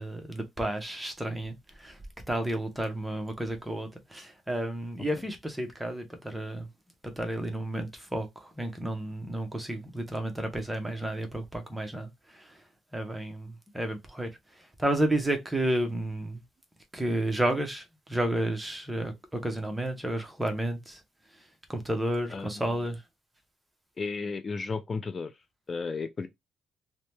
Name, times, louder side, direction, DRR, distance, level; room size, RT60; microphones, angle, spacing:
voice 1, 0.0-2.0 2.3-6.7 7.2-12.6 12.9-14.3 14.8-16.4 16.9-21.0 21.7-23.0, right 1 dB, 10° right, 0.8 m, -31 dB
voice 2, 22.3-22.7 24.0-25.3 25.7-26.3, left 4 dB, 35° left, 0.3 m, -34 dB
2.7 x 2.1 x 3.2 m
cardioid pair, 90°, 0 cm